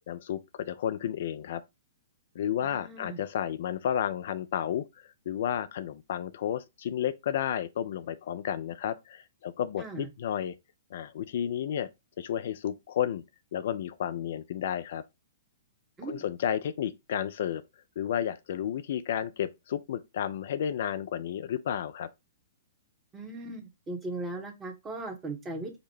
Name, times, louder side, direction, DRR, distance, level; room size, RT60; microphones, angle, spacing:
voice 1, 0.1-1.6 2.4-4.8 5.3-10.5 10.9-11.9 12.2-13.2 13.5-15.0 16.0-17.6 18.0-22.1, left 9 dB, 50° left, 0.3 m, -32 dB
voice 2, 2.6-3.2 9.8-10.1 16.0-16.2 23.1-25.7, right 2 dB, 15° right, 1.0 m, -38 dB
5.0 x 2.1 x 4.6 m
figure-of-eight pair, 110°, 0 cm